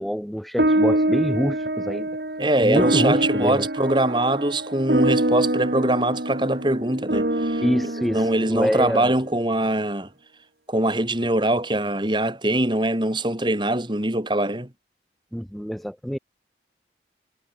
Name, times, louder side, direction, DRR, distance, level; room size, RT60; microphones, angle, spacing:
voice 1, 0.0-2.1 2.6-3.7 7.6-9.1 15.3-16.2, equal, ahead, 0.7 m, -26 dB
sound 1, 0.6-9.3, right 1 dB, 60° right, 2.3 m, -25 dB
voice 2, 2.4-7.6 8.1-10.1 10.7-14.7, right 1 dB, 25° right, 2.4 m, -23 dB
head